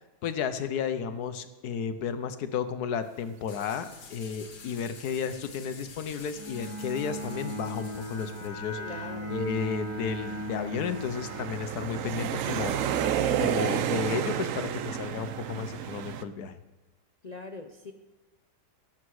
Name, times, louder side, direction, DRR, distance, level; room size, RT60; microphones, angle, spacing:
voice 1, 0.2-8.8 9.3-12.8 13.4-16.6, left 6 dB, 70° left, 11 dB, 1.3 m, -33 dB
sound 1, 3.5-8.5, left 5 dB, 90° left, 1.9 m, -49 dB
Bowed string instrument, 6.4-12.2, equal, 10° right, 2.3 m, -38 dB
sound 2, 8.2-8.3 9.0-16.2, right 9 dB, 65° right, 0.9 m, -31 dB
voice 2, 8.8-9.5 17.2-17.9, left 3 dB, 55° left, 5 dB, 0.4 m, -42 dB
17.5 x 7.4 x 4.8 m, 1.1 s
omnidirectional pair, 1.8 m